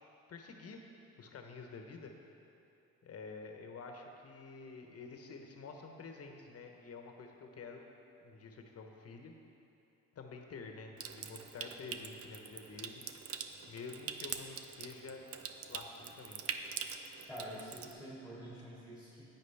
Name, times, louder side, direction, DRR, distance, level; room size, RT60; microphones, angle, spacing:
voice 1, 0.3-0.8 1.2-2.1 3.0-7.8 8.2-9.3 10.1-13.0 13.7-15.2 15.7-16.6, left 4 dB, 50° left, 3 dB, 1.1 m, -49 dB
Water tap faucet / Sink (filling or washing) / Trickle dribble, 11.0-17.9, right 7 dB, 50° right, 0.6 m, -44 dB
voice 2, 17.3-19.2, equal, 5° right, -8 dB, 2.3 m, -47 dB
9.9 x 8.9 x 3.5 m, 2.8 s
cardioid pair, 90°, 30 cm